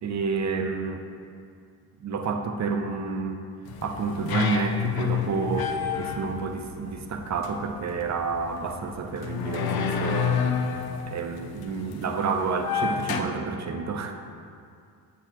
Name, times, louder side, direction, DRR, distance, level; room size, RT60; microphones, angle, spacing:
voice 1, 0.0-1.0 2.0-3.4 3.8-10.6 11.1-14.2, right 4 dB, 40° right, 5 dB, 0.7 m, -29 dB
sound 1, 3.6-13.2, left 6 dB, 60° left, 0.7 m, -30 dB
8.3 x 6.9 x 3.0 m, 2.3 s
supercardioid pair, 80°, 42 cm